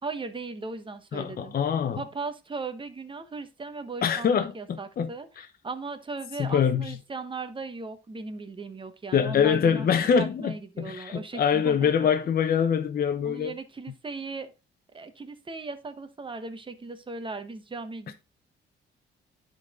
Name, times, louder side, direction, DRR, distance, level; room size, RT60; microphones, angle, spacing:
voice 1, 0.0-1.6 2.0-5.3 5.6-9.9 10.1-11.9 13.2-14.5 14.9-18.1, right 3 dB, 25° right, 1.1 m, -37 dB
voice 2, 1.1-2.0 4.0-5.1 5.4-5.5 6.4-7.0 9.1-13.5, left 7 dB, 50° left, 0.7 m, -24 dB
10.5 x 4.0 x 3.7 m
cardioid pair, 90°, 20 cm